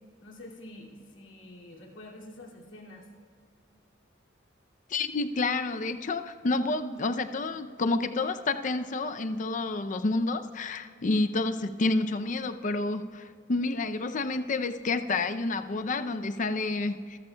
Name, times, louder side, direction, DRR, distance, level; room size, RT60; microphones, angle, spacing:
voice 1, 0.2-3.0, left 1 dB, 75° left, -1 dB, 2.4 m, -47 dB
voice 2, 4.9-17.2, left 3 dB, 40° left, 9 dB, 0.5 m, -29 dB
25.5 x 14.0 x 2.3 m, 2.2 s
head